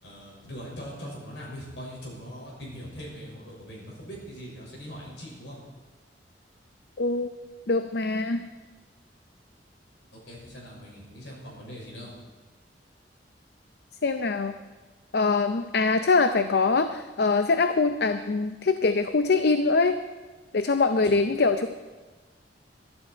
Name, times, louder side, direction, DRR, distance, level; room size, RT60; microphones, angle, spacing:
voice 1, 0.0-5.6 10.1-12.1 21.0-21.1, equal, 80° left, -3 dB, 6.1 m, -41 dB
voice 2, 7.0-7.3 7.7-8.4 14.0-14.5 15.1-20.0 20.5-21.7, left 3 dB, 65° left, 9 dB, 0.6 m, -23 dB
22.0 x 12.5 x 4.5 m, 1.3 s
head